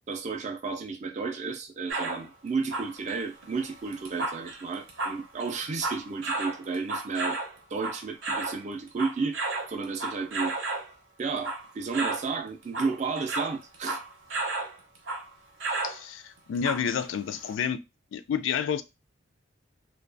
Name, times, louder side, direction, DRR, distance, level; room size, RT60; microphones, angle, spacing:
voice 1, 0.1-7.4 7.7-9.4 9.7-10.5 11.2-14.0, right 4 dB, 40° right, 0.4 m, -32 dB
sound 1, 1.9-2.3 2.6-8.6 8.9-10.9 11.4-11.7 11.9-12.3 12.6-14.8 15.1-15.3 15.6-16.0 16.6-17.0 17.5-17.6, right 2 dB, 80° right, 0.6 m, -33 dB
voice 2, 15.8-17.8 18.1-18.8, left 7 dB, 80° left, 0.3 m, -29 dB
2.2 x 2.2 x 2.5 m
head